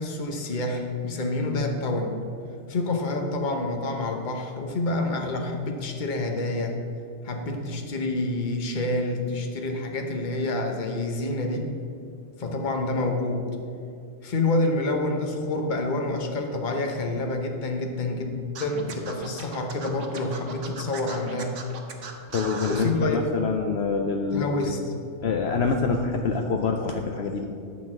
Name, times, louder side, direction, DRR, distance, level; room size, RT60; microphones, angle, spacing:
voice 1, 0.0-2.2 2.7-6.8 7.2-11.7 12.4-13.5 14.2-21.5 22.7-23.2 24.3-24.8, left 2 dB, 40° left, 3 dB, 1.1 m, -28 dB
Scratching (performance technique), 18.5-22.9, right 5 dB, 80° right, 1.3 m, -38 dB
voice 2, 22.3-24.5 25.2-27.4, left 4 dB, 60° left, 3 dB, 0.8 m, -26 dB
11.5 x 4.0 x 7.4 m, 2.4 s
omnidirectional pair, 1.3 m